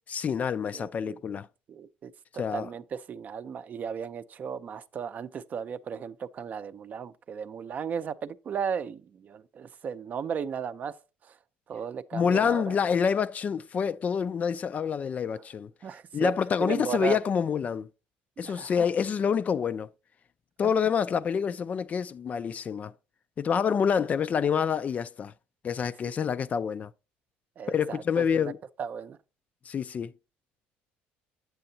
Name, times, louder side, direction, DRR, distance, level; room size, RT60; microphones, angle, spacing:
voice 1, 0.1-1.5 2.4-2.7 12.1-15.7 16.1-17.9 18.4-19.9 20.6-22.9 23.4-25.3 25.6-26.9 27.7-28.6 29.7-30.1, left 7 dB, 35° left, 0.3 m, -27 dB
voice 2, 0.7-1.2 1.7-10.9 11.7-12.8 15.8-16.3 16.7-17.2 18.4-18.7 26.2-26.3 27.6-28.5 28.8-29.2, right 7 dB, 40° right, 0.5 m, -35 dB
7.8 x 7.6 x 2.7 m
cardioid pair, 105°, 4 cm